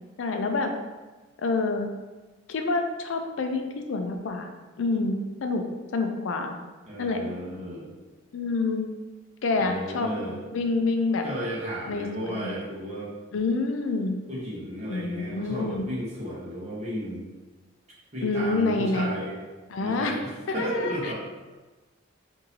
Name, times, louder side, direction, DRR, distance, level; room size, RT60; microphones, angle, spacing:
voice 1, 0.2-0.7 1.4-1.9 2.5-4.5 4.8-5.6 5.9-6.5 7.0-7.2 8.3-8.9 9.4-10.1 10.5-11.2 11.9-12.6 13.3-14.2 14.9-15.9 18.2-19.1 19.7-20.2 20.5-21.1, left 3 dB, 70° left, 5 dB, 0.4 m, -27 dB
voice 2, 6.9-7.9 9.6-10.4 11.2-13.1 14.3-17.3 18.1-19.3 19.8-21.1, equal, 35° right, -7 dB, 1.0 m, -34 dB
3.9 x 2.7 x 2.7 m, 1.2 s
head